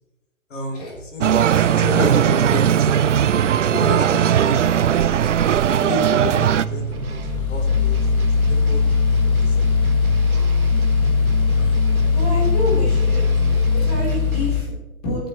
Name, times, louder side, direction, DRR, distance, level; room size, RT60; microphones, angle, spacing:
voice 1, 0.5-1.3 1.5-3.1 3.7-4.8 5.7-8.8 9.1-9.6 11.6-12.3, left 3 dB, 55° left, 2 dB, 3.9 m, -31 dB
sound 1, 1.2-6.7, right 9 dB, 55° right, 0.6 m, -18 dB
sound 2, 2.2-14.5, right 7 dB, 75° right, 1.3 m, -32 dB
sound 3, 4.9-14.6, left 5 dB, 75° left, 3.6 m, -19 dB
voice 2, 12.1-13.2 13.7-15.3, left 1 dB, 25° left, -4 dB, 3.9 m, -28 dB
27.0 x 10.0 x 3.1 m, 1.0 s
hypercardioid pair, 175°, 43 cm